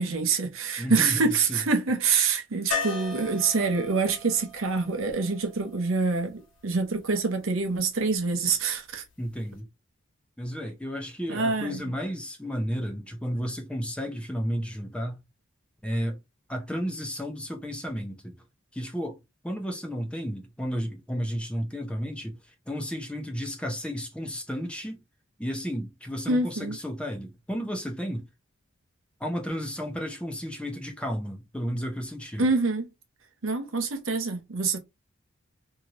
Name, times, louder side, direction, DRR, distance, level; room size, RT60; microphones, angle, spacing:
voice 1, 0.0-9.0 11.3-11.8 26.3-26.8 32.4-32.9 33.4-34.8, right 4 dB, 75° right, 0.8 m, -26 dB
voice 2, 0.8-1.6 9.2-9.7 10.4-15.2 15.8-16.2 16.5-18.4 18.7-25.0 25.4-28.3 29.2-32.5, equal, 5° left, 0.6 m, -33 dB
sound 1, 2.7-6.6 9.2-9.3 9.6-9.7, left 4 dB, 65° left, 1.4 m, -36 dB
2.8 x 2.5 x 2.9 m
head